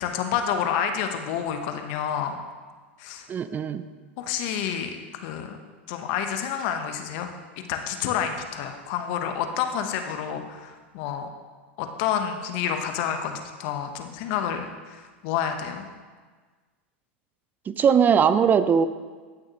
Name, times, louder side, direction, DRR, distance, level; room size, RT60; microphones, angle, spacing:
voice 1, 0.0-2.4 3.0-3.3 4.2-5.6 5.9-7.3 7.6-11.3 11.8-15.9, left 8 dB, 60° left, 6 dB, 1.0 m, -29 dB
voice 2, 3.3-3.8 17.7-18.9, right 7 dB, 25° right, 12 dB, 0.5 m, -20 dB
15.0 x 6.3 x 3.0 m, 1.4 s
hypercardioid pair, 100°, 7 cm